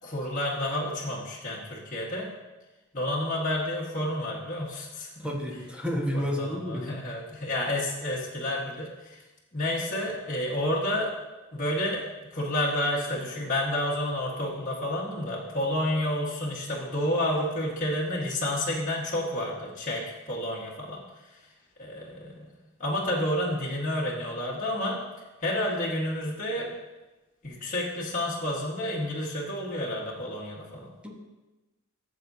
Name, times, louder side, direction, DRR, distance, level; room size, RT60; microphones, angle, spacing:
voice 1, 0.0-2.3 2.9-5.3 6.1-9.2 9.5-11.1 11.5-21.0 21.8-22.5 22.8-25.0 25.4-26.7 27.4-31.1, left 1 dB, 40° left, -6 dB, 1.6 m, -30 dB
voice 2, 5.2-6.9 31.0-31.1, equal, 5° right, -1 dB, 1.4 m, -30 dB
14.0 x 7.5 x 2.8 m, 1.1 s
head